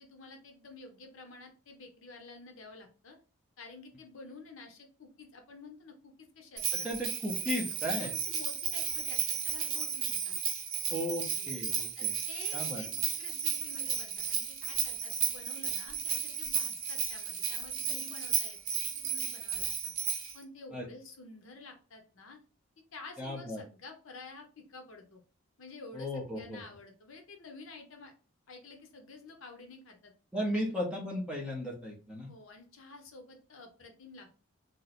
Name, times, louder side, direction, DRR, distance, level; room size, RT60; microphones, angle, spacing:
voice 1, 0.0-3.2 3.6-6.9 8.0-10.4 11.3-11.5 12.0-19.9 20.3-22.4 22.9-25.2 25.6-28.1 28.5-30.1 30.5-30.7 32.3-34.4, left 3 dB, 65° left, 4 dB, 0.7 m, -50 dB
Bell, 6.6-20.4, right 7 dB, 85° right, 0.7 m, -34 dB
voice 2, 6.8-8.1 10.9-12.2 12.5-12.8 20.7-20.8 23.2-23.6 25.9-26.6 30.3-32.3, equal, 5° right, -2 dB, 0.7 m, -35 dB
2.8 x 2.0 x 4.0 m, 0.36 s
head